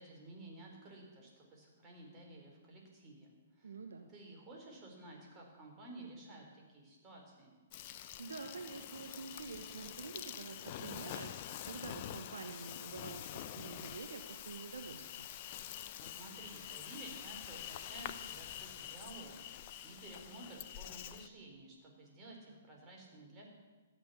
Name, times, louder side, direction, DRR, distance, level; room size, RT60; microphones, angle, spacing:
voice 1, 0.0-3.7 4.1-7.6 16.0-23.5, right 2 dB, 25° right, -1 dB, 4.3 m, -53 dB
voice 2, 3.6-4.1 8.2-15.3, right 4 dB, 70° right, 5 dB, 1.1 m, -47 dB
Insect, 7.7-21.3, left 11 dB, 40° left, 0.7 m, -46 dB
13.5 x 8.9 x 7.3 m, 1.3 s
figure-of-eight pair, 120°, 0 cm